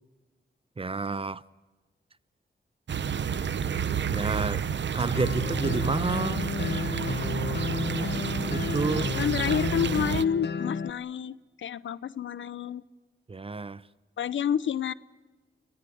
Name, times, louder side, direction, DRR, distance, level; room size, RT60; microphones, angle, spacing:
voice 1, 0.8-1.4 4.1-4.6 4.9-6.5 8.5-9.1 13.3-13.8, right 4 dB, 30° right, 0.8 m, -30 dB
sound 1, 2.9-10.2, right 7 dB, 70° right, 0.9 m, -30 dB
sound 2, 5.1-10.9, left 6 dB, 65° left, 1.0 m, -32 dB
voice 2, 9.1-12.8 14.2-14.9, left 8 dB, 90° left, 0.8 m, -29 dB
25.5 x 17.5 x 9.3 m
wide cardioid pair, 85°, 19 cm